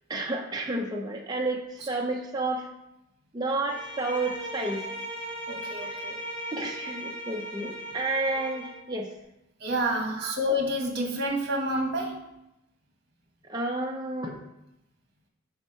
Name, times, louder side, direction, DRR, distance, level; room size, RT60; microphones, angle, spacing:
voice 1, 0.1-2.7 3.3-4.9 5.8-6.1 6.5-9.1 10.2-10.3 13.5-14.4, right 2 dB, 20° right, 0 dB, 0.5 m, -31 dB
Bowed string instrument, 3.7-8.9, equal, 65° left, 2.1 m, -38 dB
voice 2, 5.5-6.2 9.6-12.3, equal, 50° right, 1 dB, 1.2 m, -29 dB
4.7 x 4.4 x 5.4 m, 0.86 s
head